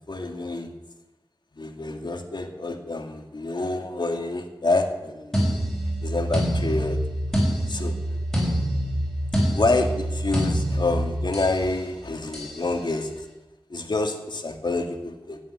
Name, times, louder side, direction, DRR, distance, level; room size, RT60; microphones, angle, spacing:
voice 1, 0.1-0.7 1.5-5.4 6.0-7.0 7.7-7.9 9.5-13.1 13.7-15.4, left 2 dB, 55° left, 5 dB, 2.2 m, -27 dB
sound 1, 5.3-11.6 12.3-12.6, equal, 5° left, 6.5 m, -26 dB
14.0 x 9.2 x 9.8 m, 0.98 s
wide cardioid pair, 70°, 9 cm